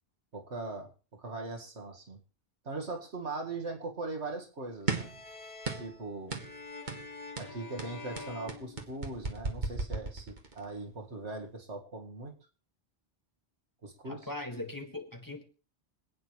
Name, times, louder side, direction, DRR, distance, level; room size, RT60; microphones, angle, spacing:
voice 1, 0.3-2.2 2.6-5.1 5.7-6.4 7.4-12.4 13.8-14.3, right 3 dB, 85° right, 2.2 m, -40 dB
sound 1, 4.9-9.5, left 3 dB, 35° left, 2.2 m, -47 dB
sound 2, 4.9-5.2 5.6-6.0 6.3-6.5 6.9-7.1 7.4-10.7, right 3 dB, 45° right, 1.7 m, -35 dB
voice 2, 14.1-15.4, left 2 dB, 15° left, 1.9 m, -40 dB
26.0 x 9.0 x 3.2 m
omnidirectional pair, 1.1 m